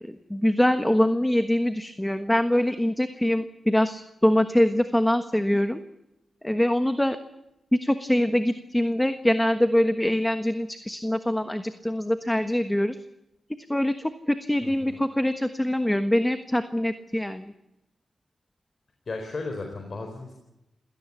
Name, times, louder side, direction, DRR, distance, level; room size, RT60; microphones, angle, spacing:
voice 1, 0.0-5.8 6.4-7.2 7.7-13.0 13.5-17.5, left 1 dB, 10° left, 9 dB, 1.3 m, -24 dB
voice 2, 14.6-15.0 19.1-20.3, left 3 dB, 50° left, 3 dB, 4.2 m, -35 dB
27.5 x 17.5 x 7.4 m, 0.91 s
cardioid pair, 80°, 0 cm